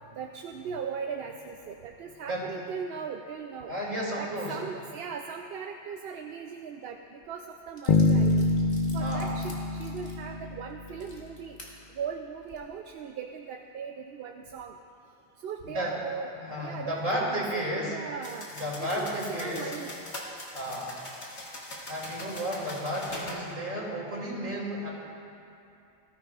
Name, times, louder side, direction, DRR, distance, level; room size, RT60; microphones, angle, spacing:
voice 1, 0.2-3.7 4.1-8.5 8.9-9.5 9.8-11.6 12.0-14.8 15.4-16.3 16.6-18.5 18.8-19.9, right 6 dB, 65° right, 4 dB, 0.8 m, -38 dB
voice 2, 2.3-2.6 3.7-4.6 9.0-9.3 15.7-16.0 16.4-17.9 18.6-19.7 20.5-20.9 21.9-24.9, equal, 50° right, -5 dB, 2.9 m, -32 dB
sound 1, 7.2-7.3 7.8-11.7 12.3-12.6, left 1 dB, 40° left, 2.1 m, -51 dB
Bass guitar, 7.9-11.0, left 3 dB, 55° left, 0.5 m, -25 dB
sound 2, 18.2-23.4, left 1 dB, 80° left, 2.2 m, -42 dB
19.0 x 14.0 x 2.4 m, 2.6 s
omnidirectional pair, 1.1 m